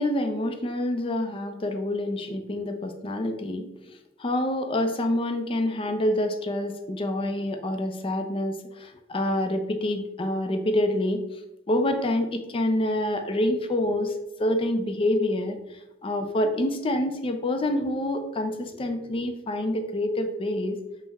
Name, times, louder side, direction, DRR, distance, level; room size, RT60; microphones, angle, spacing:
voice 1, 0.0-3.9 4.2-11.2 11.7-14.1 14.4-20.8, left 1 dB, 30° left, 6 dB, 0.4 m, -27 dB
5.3 x 2.1 x 3.4 m, 0.91 s
head